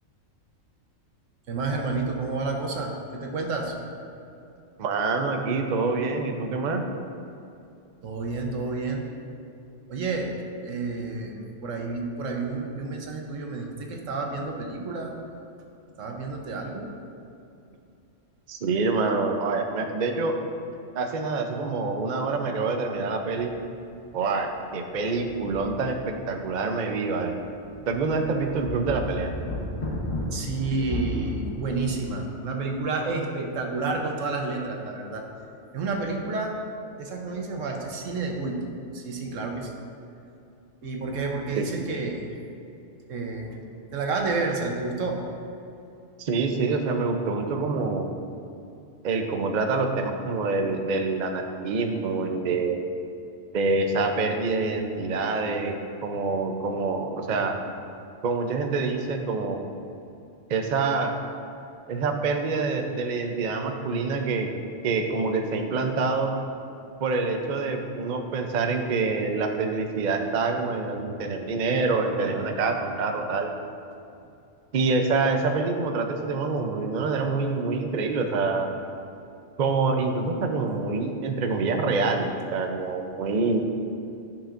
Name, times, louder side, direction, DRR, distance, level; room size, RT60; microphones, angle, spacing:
voice 1, 1.5-3.7 8.0-9.1 9.9-10.3 10.6-15.1 16.0-16.9 30.3-35.2 35.7-36.5 37.0-38.6 38.9-39.7 40.8-42.4 43.1-43.6 43.9-45.2, right 3 dB, 75° right, 1 dB, 1.2 m, -30 dB
voice 2, 4.8-6.8 18.5-20.3 21.0-23.5 24.1-27.4 27.9-29.3 41.6-41.7 46.2-48.1 49.0-52.8 53.5-57.5 58.2-59.6 60.5-61.1 61.9-64.5 64.8-66.3 67.0-73.5 74.7-78.7 79.6-83.7, right 3 dB, 55° right, 4 dB, 0.5 m, -26 dB
sound 1, 23.4-23.5 23.9-24.0 24.9-26.3 26.7-26.8 27.3-32.1, left 1 dB, 75° left, 1.6 m, -34 dB
11.5 x 5.8 x 2.5 m, 2.6 s
omnidirectional pair, 1.4 m